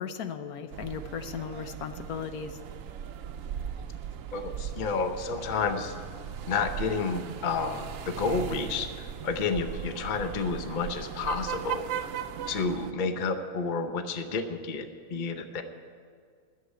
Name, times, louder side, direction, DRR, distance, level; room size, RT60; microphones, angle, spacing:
voice 1, 0.0-2.6, left 7 dB, 80° left, 8 dB, 1.2 m, -36 dB
sound 1, 0.7-12.9, right 9 dB, 70° right, 0.9 m, -38 dB
voice 2, 4.3-5.9 6.5-8.9 9.2-11.8 12.5-15.6, left 4 dB, 40° left, 7 dB, 0.8 m, -30 dB
11.5 x 7.7 x 9.8 m, 2.1 s
omnidirectional pair, 1.6 m